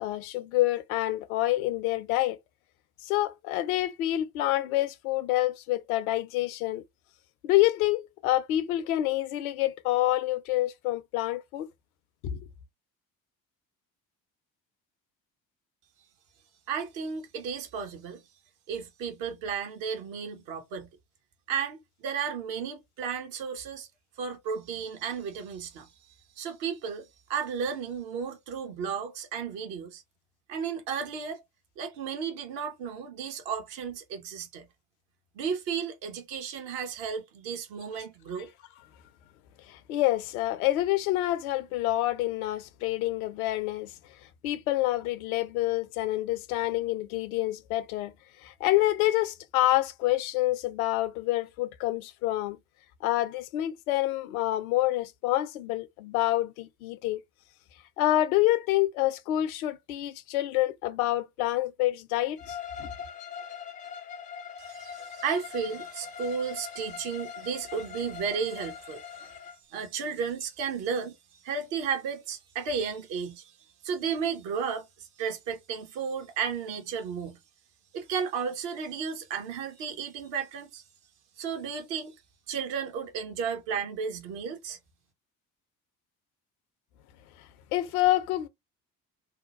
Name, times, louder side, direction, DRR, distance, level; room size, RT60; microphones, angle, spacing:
voice 1, 0.0-2.4 3.0-6.8 7.4-11.7 12.2-12.4 39.7-43.9 44.4-48.1 48.4-52.6 53.0-57.2 58.0-62.9 87.7-88.5, left 15 dB, 60° left, 0.6 m, -27 dB
voice 2, 16.7-18.2 18.7-20.9 21.5-23.9 24.2-25.9 26.4-30.0 30.5-31.4 31.8-34.7 35.3-38.5 64.6-69.3 69.7-71.1 71.4-73.5 73.8-74.9 75.2-77.4 77.9-80.8 81.4-82.2 82.5-84.8, right 6 dB, 55° right, 1.0 m, -33 dB
Bowed string instrument, 62.4-69.6, left 7 dB, 20° left, 0.4 m, -42 dB
2.8 x 2.2 x 4.0 m
figure-of-eight pair, 55°, 49 cm